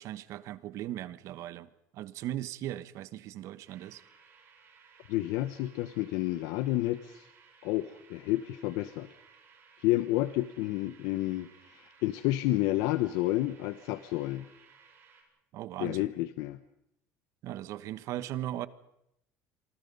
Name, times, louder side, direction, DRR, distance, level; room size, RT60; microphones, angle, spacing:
voice 1, 0.0-4.0 15.5-16.1 17.4-18.7, right 13 dB, 60° right, 15 dB, 1.2 m, -38 dB
sound 1, 3.7-15.2, right 6 dB, 45° right, 6.8 m, -59 dB
voice 2, 5.1-7.3 7.6-9.1 9.8-14.5 15.8-16.6, left 16 dB, 85° left, 12 dB, 1.1 m, -30 dB
28.5 x 24.0 x 5.5 m, 0.79 s
cardioid pair, 140°, 6 cm